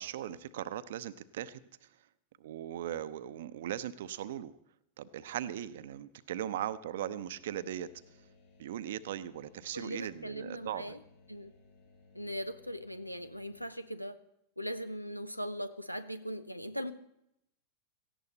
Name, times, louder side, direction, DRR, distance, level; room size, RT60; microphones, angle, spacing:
voice 1, 0.0-1.6 2.4-4.5 5.0-7.9 8.6-11.0, right 11 dB, 55° right, 0.8 m, -39 dB
sound 1, 7.2-13.7, left 3 dB, 65° left, 4.8 m, -62 dB
voice 2, 9.7-11.0 11.3-11.5 12.1-14.2 14.6-16.9, equal, 90° left, 0.8 m, -39 dB
17.5 x 15.0 x 4.1 m
figure-of-eight pair, 90°, 0 cm